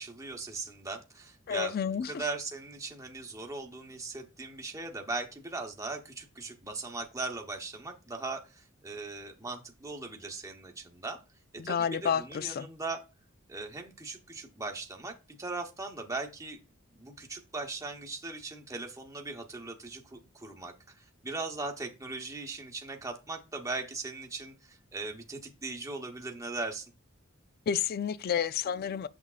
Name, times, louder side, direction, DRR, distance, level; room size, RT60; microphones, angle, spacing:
voice 1, 0.0-1.7 2.0-11.2 11.5-13.0 13.5-16.6 16.9-26.8, right 3 dB, 15° right, 0.9 m, -39 dB
voice 2, 1.5-2.2 11.6-12.7 27.7-29.1, left 8 dB, 45° left, 0.3 m, -30 dB
7.2 x 5.9 x 2.4 m
head